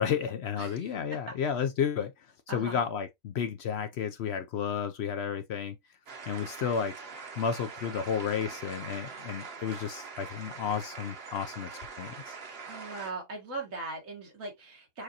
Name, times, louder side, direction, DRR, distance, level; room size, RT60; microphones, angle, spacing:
voice 1, 0.0-2.1 2.5-5.8 6.3-7.0 7.4-11.7 12.0-12.4, left 7 dB, 65° left, 0.7 m, -32 dB
voice 2, 0.6-0.9 2.5-2.8 12.7-15.0, right 3 dB, 85° right, 2.1 m, -39 dB
sound 1, 6.1-13.1, right 5 dB, 50° right, 1.1 m, -43 dB
6.4 x 2.6 x 2.7 m
omnidirectional pair, 1.4 m